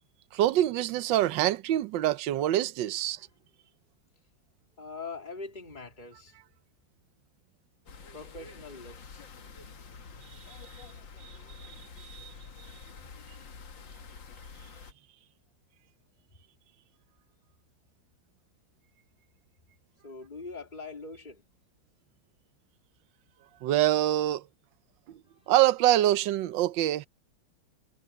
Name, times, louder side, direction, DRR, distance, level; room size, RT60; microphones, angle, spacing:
voice 1, 0.3-3.3 10.5-10.6 11.2-12.3 23.6-24.4 25.1-25.2 25.5-27.1, right 13 dB, 70° right, 1.4 m, -26 dB
voice 2, 4.8-6.4 8.1-9.3 20.0-21.4 25.3-25.5, left 3 dB, 20° left, 3.2 m, -43 dB
sound 1, 7.9-14.9, left 5 dB, 65° left, 2.5 m, -48 dB
omnidirectional pair, 2.2 m